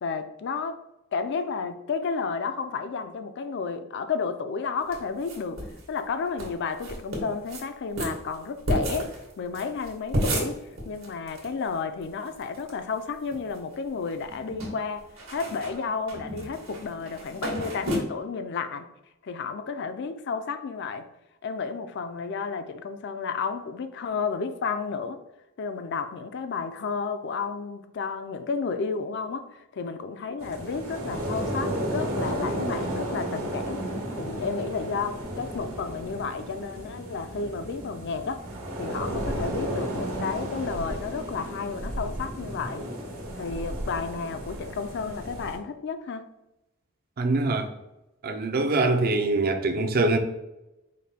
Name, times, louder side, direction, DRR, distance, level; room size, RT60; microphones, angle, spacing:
voice 1, 0.0-0.8 1.1-5.6 5.9-10.6 10.9-15.0 15.3-18.9 19.2-21.1 21.4-25.2 25.6-33.8 34.2-38.4 38.8-42.9 43.4-46.2, left 5 dB, 55° left, 0.4 m, -32 dB
sound 1, 4.9-5.8 6.1-6.2 6.4-6.5 6.8-7.6 8.0-11.5 11.7-11.8 12.0-12.7 13.1-13.8 14.1-18.0, right 1 dB, 70° right, 1.3 m, -32 dB
sound 2, 30.4-45.6, right 1 dB, 90° right, 1.4 m, -33 dB
voice 2, 47.2-47.7 48.2-50.2, right 2 dB, 45° right, 0.5 m, -23 dB
5.1 x 2.2 x 4.2 m
head